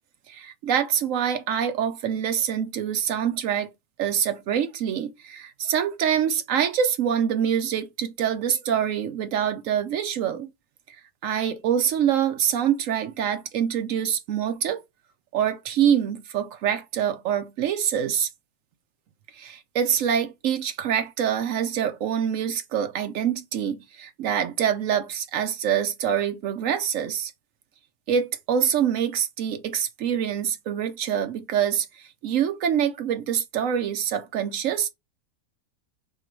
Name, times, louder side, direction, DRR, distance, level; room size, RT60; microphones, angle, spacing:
voice 1, 0.3-3.7 4.0-10.5 11.2-14.8 15.3-18.3 19.4-27.3 28.1-34.9, right 8 dB, 70° right, 0.8 m, -25 dB
3.7 x 3.0 x 4.3 m
omnidirectional pair, 1.8 m